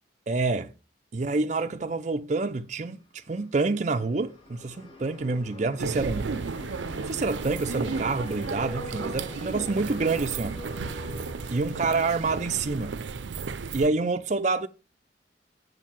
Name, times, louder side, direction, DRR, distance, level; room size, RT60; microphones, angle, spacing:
voice 1, 0.3-0.7 1.1-6.4 7.0-10.6 11.5-13.0 13.7-14.7, right 3 dB, 40° right, 0.5 m, -27 dB
sound 1, 2.9-13.3, left 3 dB, 30° left, 2.2 m, -45 dB
sound 2, 5.8-13.9, right 4 dB, 85° right, 0.6 m, -34 dB
8.1 x 4.6 x 7.2 m
head